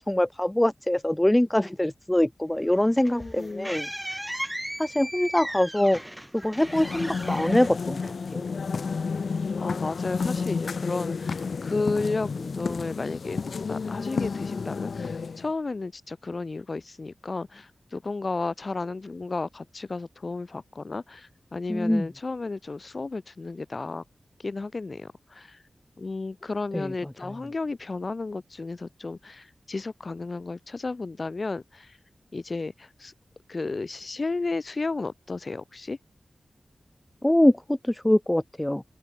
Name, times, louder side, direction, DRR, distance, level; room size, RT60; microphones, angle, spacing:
voice 1, 0.0-3.9 4.8-6.0 6.3-8.5 21.7-22.1 26.7-26.9 37.2-38.8, left 1 dB, 15° left, 0.5 m, -23 dB
sound 1, 2.7-8.5, equal, 5° right, 3.5 m, -37 dB
voice 2, 3.1-3.7 9.6-13.4 13.7-24.0 24.4-25.6 26.0-32.0 32.3-33.1 33.5-36.0, left 3 dB, 50° left, 6.3 m, -33 dB
sound 2, 6.6-15.5, left 5 dB, 75° left, 3.8 m, -31 dB
open air
cardioid pair, 55°, 0 cm